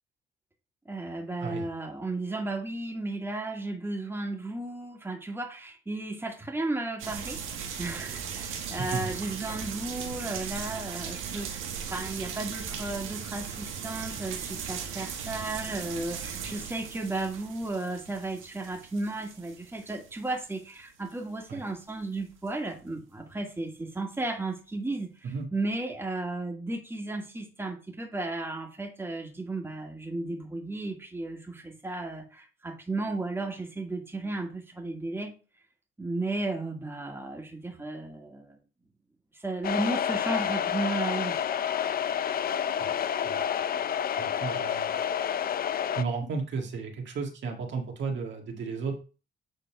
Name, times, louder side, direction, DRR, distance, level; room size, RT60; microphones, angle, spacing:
voice 1, 0.9-35.3 36.0-38.6 39.4-41.5, right 2 dB, 10° right, 1.9 m, -34 dB
sound 1, 7.0-20.8 21.1-21.2 21.8-22.2 22.5-22.6, right 7 dB, 90° right, 1.6 m, -38 dB
voice 2, 8.8-9.1 21.5-21.6 25.2-25.5 42.8-42.9 43.2-43.4 44.2-45.0 46.0-48.9, right 5 dB, 65° right, 1.8 m, -33 dB
sound 2, 39.6-46.0, left 9 dB, 50° left, 0.5 m, -29 dB
8.3 x 4.0 x 4.5 m
cardioid pair, 90°, 20 cm